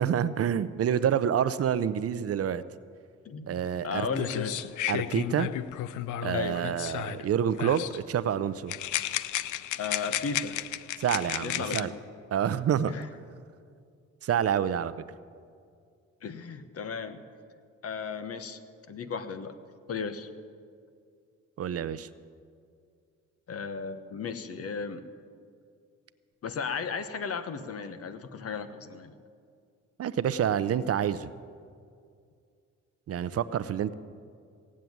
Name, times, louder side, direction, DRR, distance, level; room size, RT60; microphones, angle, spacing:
voice 1, 0.0-2.6 3.5-4.1 4.9-5.5 6.2-8.7 11.0-11.9 12.3-12.9 14.2-14.9 21.6-22.1 30.0-31.3 33.1-33.9, right 9 dB, 50° right, 15 dB, 0.6 m, -27 dB
voice 2, 3.2-4.6 6.3-6.7 9.8-10.6 11.4-12.0 12.9-13.1 16.2-17.2 17.8-18.6 18.9-19.5 19.9-20.3 23.5-25.0 26.4-29.1, left 5 dB, 50° left, 11 dB, 1.1 m, -35 dB
sound 1, 3.8-3.9 4.1-7.3 7.6-8.0 8.7-11.8, left 12 dB, 80° left, 0.6 m, -33 dB
17.0 x 7.5 x 9.4 m, 2.3 s
cardioid pair, 90°, 30 cm